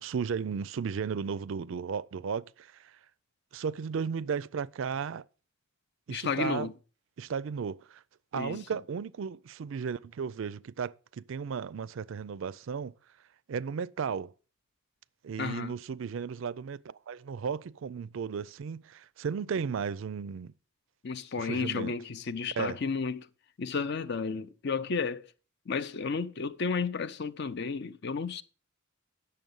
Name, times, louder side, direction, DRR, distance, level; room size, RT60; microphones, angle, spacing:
voice 1, 0.0-3.0 3.5-5.2 6.1-6.7 7.2-8.0 8.3-12.9 13.5-14.3 15.2-20.5 21.4-21.9 22.6-22.8, right 6 dB, 65° right, 0.4 m, -35 dB
voice 2, 6.1-6.7 8.3-8.6 15.4-15.7 21.0-23.3 23.6-25.3 25.7-28.4, left 5 dB, 50° left, 0.5 m, -32 dB
9.2 x 6.7 x 5.4 m
head